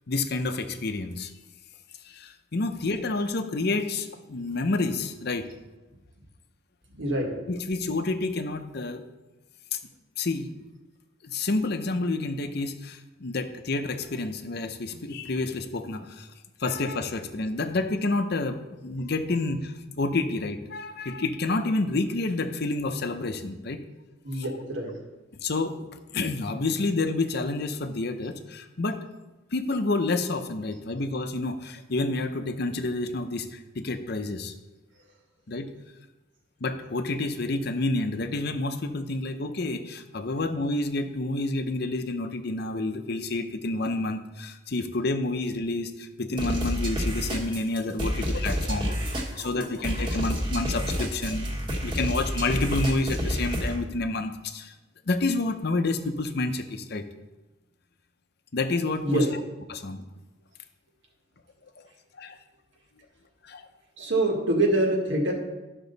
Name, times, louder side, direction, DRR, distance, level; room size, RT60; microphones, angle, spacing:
voice 1, 0.1-1.3 2.0-5.5 7.5-9.0 9.7-9.8 10.2-10.6 11.2-16.3 16.6-23.8 24.4-24.5 25.4-29.0 29.5-34.5 35.5-35.7 36.6-51.5 51.8-54.7 55.1-57.0 58.5-59.3 59.7-60.0 61.8-61.9 62.2-62.4 63.4-63.6, left 2 dB, 55° left, 8 dB, 0.7 m, -29 dB
voice 2, 7.0-7.4 24.2-25.0 47.9-48.1 48.4-48.5 49.1-49.5 59.0-59.3 64.0-65.3, right 1 dB, 65° right, 1 dB, 1.8 m, -26 dB
sound 1, 46.4-53.8, equal, 25° right, 1.4 m, -29 dB
12.0 x 6.1 x 4.0 m, 1.1 s
head